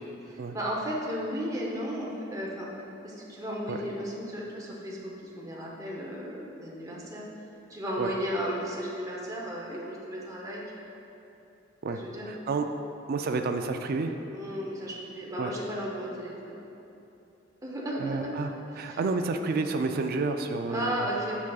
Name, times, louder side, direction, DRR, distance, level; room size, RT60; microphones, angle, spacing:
voice 1, 0.2-2.7 3.0-7.2 7.7-10.6 11.9-12.3 14.3-16.6 17.6-19.0 20.7-21.3, equal, 15° right, -4 dB, 0.8 m, -34 dB
voice 2, 12.3-12.7 13.1-14.1 15.4-15.5 18.0-18.5 18.8-21.0, right 3 dB, 50° right, 6 dB, 0.3 m, -30 dB
7.0 x 5.9 x 2.4 m, 3.0 s
head